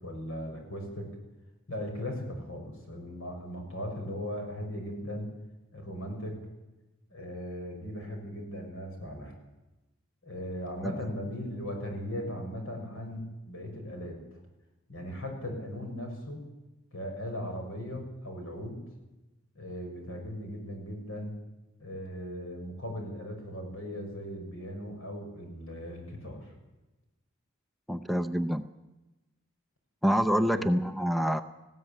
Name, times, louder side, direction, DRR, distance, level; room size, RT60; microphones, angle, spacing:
voice 1, 0.0-1.1 1.7-5.3 5.7-6.4 7.1-9.3 10.2-14.2 14.9-16.4 16.9-18.8 19.5-21.4 21.8-26.5 30.5-30.7, equal, 75° left, 3 dB, 6.3 m, -38 dB
voice 2, 27.9-28.7 30.0-31.4, equal, ahead, 11 dB, 0.6 m, -26 dB
19.0 x 16.0 x 8.7 m, 1.0 s
head